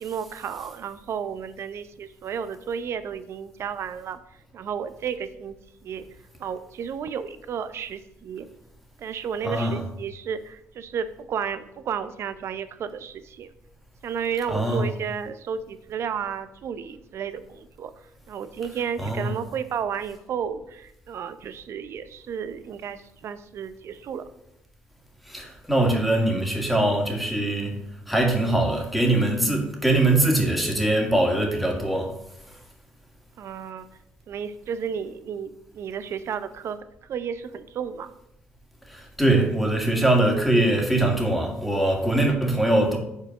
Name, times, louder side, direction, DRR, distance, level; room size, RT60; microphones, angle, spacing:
voice 1, 0.0-4.2 4.5-5.6 5.8-6.0 6.4-8.5 9.0-13.5 14.0-17.9 18.3-24.2 33.4-33.9 34.3-36.8 37.1-38.1, right 7 dB, 60° right, 0.6 m, -32 dB
voice 2, 9.4-9.8 14.5-14.9 19.0-19.3 25.3-32.1 38.9-43.0, right 1 dB, ahead, 1.8 m, -22 dB
5.2 x 4.2 x 5.9 m
supercardioid pair, 70°, 5 cm